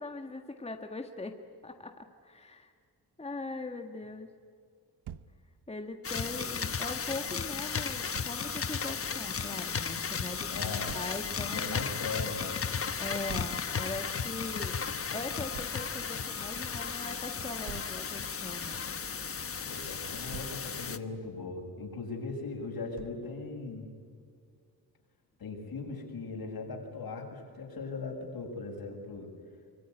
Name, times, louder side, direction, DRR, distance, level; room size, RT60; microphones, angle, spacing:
voice 1, 0.0-2.7 3.2-4.3 5.7-11.9 13.0-18.8, left 3 dB, 15° left, 4 dB, 1.6 m, -41 dB
Thump thud, 5.0-5.3 8.1-8.3 10.9-11.1 13.3-13.6 15.5-15.8 17.7-18.0 20.0-20.6 23.0-23.3, right 9 dB, 80° right, 1.0 m, -45 dB
sound 1, 6.0-21.0, left 6 dB, 35° left, 1.2 m, -35 dB
voice 2, 10.5-11.0 11.5-12.6 19.7-23.9 25.4-29.3, left 3 dB, 65° left, 1 dB, 7.3 m, -39 dB
25.5 x 22.5 x 9.8 m, 2.1 s
cardioid pair, 105°, 39 cm